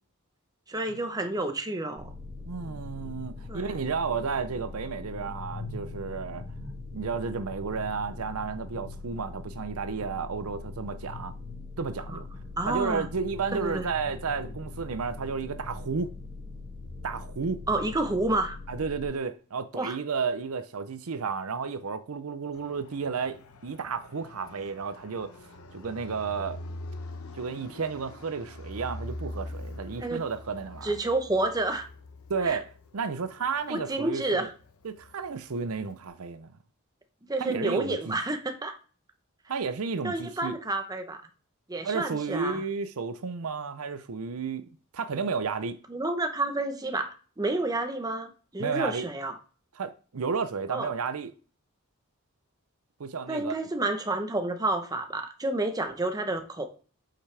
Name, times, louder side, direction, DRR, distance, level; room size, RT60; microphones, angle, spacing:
voice 1, 0.7-2.1 3.5-3.7 12.1-12.2 12.6-13.1 13.5-13.9 17.7-18.6 19.7-20.0 30.0-30.2 30.8-31.9 32.4-32.6 33.7-34.5 37.3-38.8 40.0-41.2 41.7-42.6 45.9-49.4 50.7-50.9 53.3-56.7, right 2 dB, 15° right, 0.9 m, -30 dB
sound 1, 2.0-19.1, left 3 dB, 25° left, 2.2 m, -41 dB
voice 2, 2.5-6.4 6.9-11.3 11.8-12.3 12.7-16.1 17.0-17.6 18.7-23.4 23.6-25.3 25.7-26.6 27.3-30.9 32.3-34.5 34.8-36.5 37.4-38.1 39.5-40.6 41.8-44.6 44.9-45.8 48.6-49.1 49.8-51.3 53.0-53.6, right 5 dB, 75° right, 0.6 m, -32 dB
Fixed-wing aircraft airplane, 22.5-36.1, left 1 dB, 70° left, 0.9 m, -44 dB
8.3 x 5.7 x 3.4 m
head